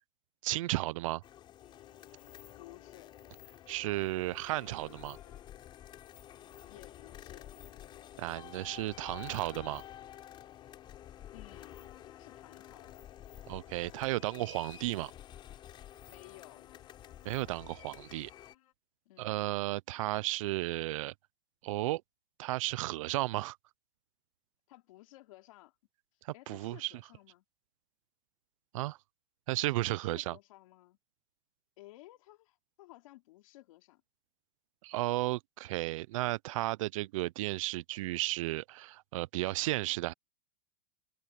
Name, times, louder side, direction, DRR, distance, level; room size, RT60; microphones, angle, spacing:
voice 1, 0.4-1.2 3.7-5.2 8.2-9.8 13.5-15.1 17.2-18.3 19.2-21.1 21.6-22.0 22.4-23.6 26.2-26.9 28.7-29.0 29.5-30.4 34.8-40.1, right 18 dB, 55° right, 0.5 m, -34 dB
sound 1, 1.2-18.5, left 11 dB, 25° left, 5.0 m, -51 dB
sound 2, 1.6-18.7, left 14 dB, 75° left, 4.8 m, -62 dB
voice 2, 2.6-3.1 6.6-7.5 11.3-11.8 12.2-13.0 16.1-16.6 19.1-19.3 24.7-25.7 26.3-27.4 29.9-31.0 31.8-34.0, left 18 dB, 60° left, 3.5 m, -55 dB
supercardioid pair, 160°, 20 cm